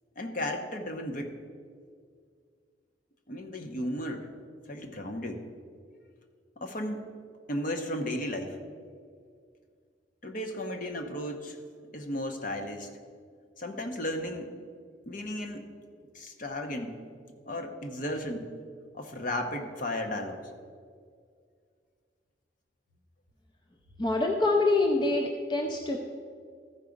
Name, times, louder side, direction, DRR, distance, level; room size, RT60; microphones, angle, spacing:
voice 1, 0.2-1.3 3.3-4.3 4.7-5.4 6.6-7.0 7.5-8.6 10.2-11.6 11.9-12.9 13.6-14.5 15.1-15.7 16.1-17.0 17.5-18.5 18.9-20.5, left 1 dB, 45° left, 5 dB, 0.9 m, -34 dB
voice 2, 24.0-26.0, left 2 dB, 25° left, 2 dB, 0.5 m, -25 dB
14.0 x 4.8 x 5.1 m, 2.1 s
head